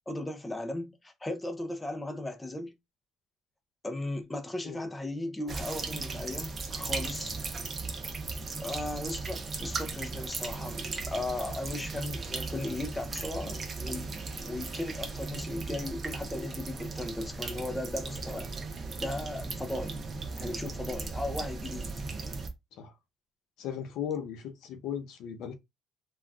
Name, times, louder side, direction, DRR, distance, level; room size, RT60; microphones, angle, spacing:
voice 1, 0.1-2.7 3.8-7.4 8.6-18.5 19.0-20.0 20.4-21.9, left 1 dB, 10° left, 0.5 m, -36 dB
sound 1, 5.5-22.5, right 4 dB, 30° right, 0.6 m, -37 dB
voice 2, 23.6-25.5, left 8 dB, 75° left, 0.7 m, -36 dB
3.8 x 2.3 x 2.3 m
cardioid pair, 135°, 0 cm